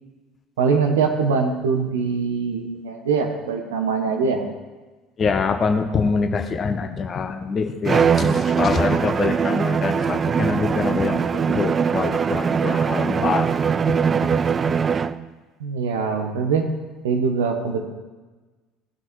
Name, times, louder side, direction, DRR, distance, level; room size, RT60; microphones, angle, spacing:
voice 1, 0.6-4.4 15.6-16.7 17.0-17.9, right 5 dB, 75° right, 4 dB, 1.4 m, -23 dB
voice 2, 5.2-13.6 13.9-14.3, left 5 dB, 35° left, 6 dB, 1.2 m, -25 dB
Bowed string instrument, 7.8-15.3, right 6 dB, 30° right, 0.4 m, -21 dB
17.5 x 6.1 x 4.7 m, 1.2 s
figure-of-eight pair, 60°, 0 cm